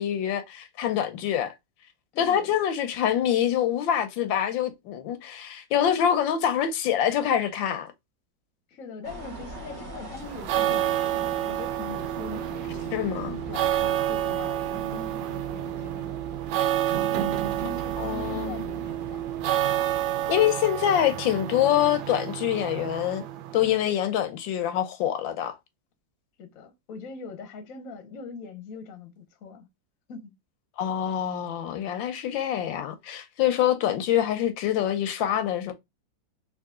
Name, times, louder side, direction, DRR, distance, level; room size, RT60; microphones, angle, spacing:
voice 1, 0.0-1.5 2.2-7.9 12.9-13.3 16.6-16.7 18.0-18.6 20.3-23.3 23.5-25.5 30.8-35.7, left 10 dB, 85° left, 1.4 m, -25 dB
voice 2, 2.1-2.5 8.7-16.0 16.9-17.3 17.6-19.2 26.4-29.7 30.1-30.3, left 5 dB, 55° left, 1.0 m, -42 dB
sound 1, 9.0-20.5, right 3 dB, 45° right, 1.0 m, -43 dB
sound 2, 10.2-23.8, right 12 dB, 80° right, 1.3 m, -29 dB
3.7 x 2.6 x 3.6 m
omnidirectional pair, 2.0 m